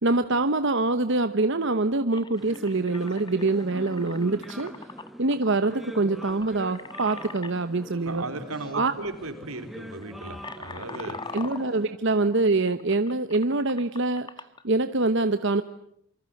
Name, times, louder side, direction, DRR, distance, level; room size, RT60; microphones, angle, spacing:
voice 1, 0.0-4.7 5.2-8.2 8.7-8.9 11.3-14.3 14.6-15.6, right 2 dB, 60° right, 10 dB, 1.0 m, -24 dB
sound 1, 1.5-1.6 2.1-7.5 8.5-8.7 9.0-9.3 9.9-14.6, left 4 dB, 20° left, 1.2 m, -43 dB
sound 2, 2.3-11.9, equal, ahead, 1.2 m, -43 dB
voice 2, 8.1-11.4, right 2 dB, 90° right, 7 dB, 4.1 m, -36 dB
28.0 x 25.0 x 7.9 m, 0.72 s
head